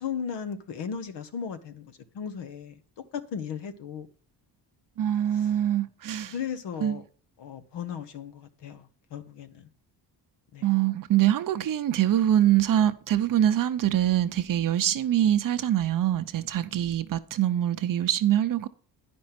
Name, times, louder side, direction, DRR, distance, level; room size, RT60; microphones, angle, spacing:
voice 1, 0.0-2.8 3.1-4.1 5.3-5.5 6.1-7.0 7.4-9.6 10.5-10.7, left 7 dB, 80° left, 1.1 m, -36 dB
voice 2, 5.0-6.3 6.8-7.0 10.6-18.7, right 11 dB, 50° right, 0.7 m, -24 dB
10.5 x 5.3 x 5.8 m
cardioid pair, 125°, 41 cm